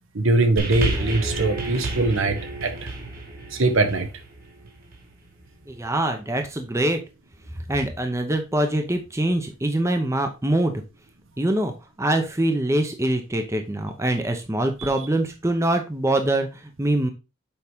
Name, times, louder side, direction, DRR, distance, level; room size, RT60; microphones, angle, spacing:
voice 1, 0.1-2.7 3.5-4.1 14.8-14.9, right 2 dB, 70° right, 7 dB, 1.2 m, -22 dB
sound 1, 0.6-5.1 5.9-6.0, right 2 dB, 40° right, 1.6 m, -30 dB
voice 2, 5.7-7.0 7.7-10.8 11.4-11.7 12.0-17.1, right 1 dB, 15° right, 5 dB, 0.7 m, -24 dB
7.0 x 4.8 x 3.6 m, 0.27 s
head